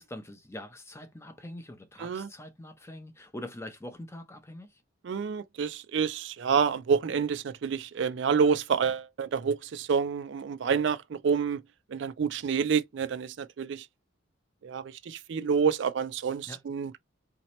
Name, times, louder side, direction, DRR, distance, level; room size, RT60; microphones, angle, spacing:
voice 1, 0.0-4.8 16.5-16.6, left 1 dB, 15° left, 0.6 m, -43 dB
voice 2, 5.0-11.6 11.9-13.9 14.6-16.9, right 6 dB, 60° right, 0.4 m, -28 dB
4.0 x 2.8 x 3.0 m
head